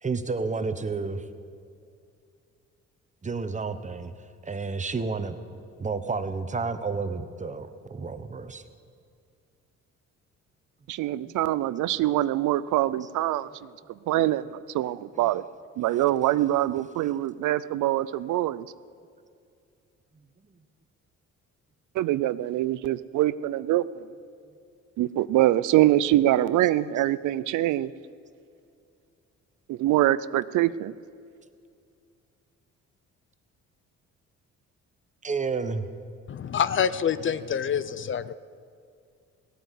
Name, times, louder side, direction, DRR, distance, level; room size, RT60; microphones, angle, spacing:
voice 1, 0.0-1.3 3.2-5.4 5.8-8.7 11.1-11.3 15.2-15.3 20.4-20.6 24.4-24.5 35.2-35.9, right 4 dB, 25° right, 10 dB, 1.0 m, -31 dB
voice 2, 10.9-13.7 14.1-15.4 15.8-18.7 21.9-24.1 25.0-27.9 29.7-30.9, right 14 dB, 80° right, 16 dB, 0.5 m, -24 dB
voice 3, 36.3-38.3, left 8 dB, 40° left, 15 dB, 0.5 m, -26 dB
17.0 x 9.1 x 8.2 m, 2.3 s
cardioid pair, 90°, 30 cm